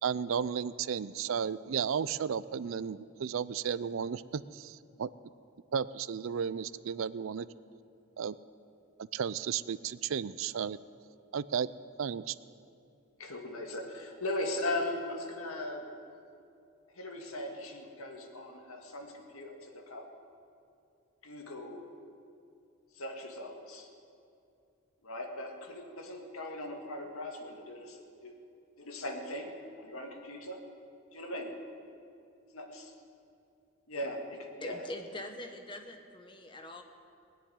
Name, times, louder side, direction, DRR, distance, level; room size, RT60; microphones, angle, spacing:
voice 1, 0.0-5.1 5.7-7.5 8.2-8.4 9.0-10.8 11.3-11.7 12.0-12.4, right 7 dB, 70° right, 17 dB, 0.4 m, -33 dB
voice 2, 13.2-15.9 17.0-20.1 21.2-21.8 22.9-23.9 25.0-28.4 28.8-29.5 29.8-30.6 31.1-31.5 32.5-32.7 33.9-34.8, left 1 dB, 85° left, 2 dB, 2.0 m, -39 dB
voice 3, 34.6-36.8, left 1 dB, 20° left, 5 dB, 0.9 m, -43 dB
19.0 x 7.0 x 9.5 m, 2.5 s
head